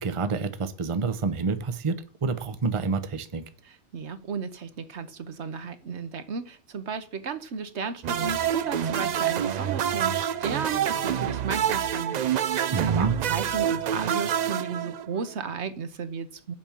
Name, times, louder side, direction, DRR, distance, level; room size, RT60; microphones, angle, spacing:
voice 1, 0.0-3.4 12.7-13.1, right 4 dB, 30° right, 11 dB, 0.8 m, -28 dB
voice 2, 3.6-16.5, right 5 dB, 75° right, 11 dB, 1.2 m, -34 dB
sound 1, 8.0-15.3, right 9 dB, 55° right, 0.5 m, -27 dB
7.4 x 5.3 x 7.2 m, 0.38 s
omnidirectional pair, 1.2 m